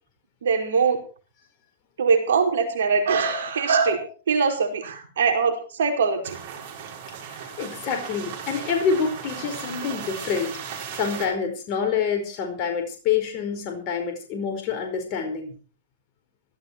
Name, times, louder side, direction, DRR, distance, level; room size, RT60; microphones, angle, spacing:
voice 1, 0.4-1.0 2.0-6.4, right 5 dB, 80° right, 4 dB, 4.9 m, -22 dB
sound 1, 6.2-11.3, right 7 dB, 55° right, 6.7 m, -36 dB
voice 2, 7.3-15.5, left 6 dB, 45° left, 3 dB, 4.9 m, -27 dB
16.5 x 13.5 x 4.7 m, 0.37 s
hypercardioid pair, 115°, 0 cm